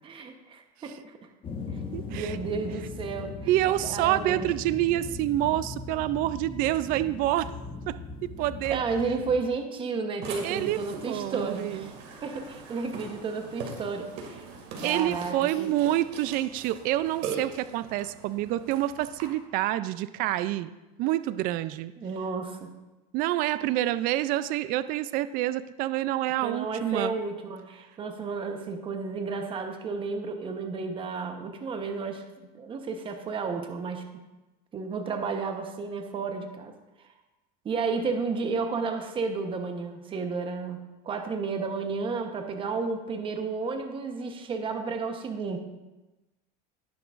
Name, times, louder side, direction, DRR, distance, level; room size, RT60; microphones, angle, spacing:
voice 1, 0.0-1.2 2.1-3.3 3.8-4.6 8.7-11.9 12.2-14.5 14.8-15.9 22.0-22.7 26.4-32.2 32.5-34.0 34.7-36.7 37.6-40.8 41.0-45.6, right 4 dB, 25° right, 5 dB, 1.0 m, -32 dB
sound 1, 1.4-9.4, left 3 dB, 25° left, 1.3 m, -39 dB
voice 2, 1.9-2.4 3.5-7.5 7.9-8.0 8.4-8.8 10.4-10.8 11.1-11.9 14.8-20.7 21.0-21.9 23.1-27.2, right 14 dB, 45° right, 14 dB, 0.4 m, -27 dB
Burping eructation, 10.2-19.3, right 5 dB, 65° right, 2.3 m, -41 dB
17.5 x 5.9 x 2.5 m, 1.1 s
supercardioid pair, 135°, 21 cm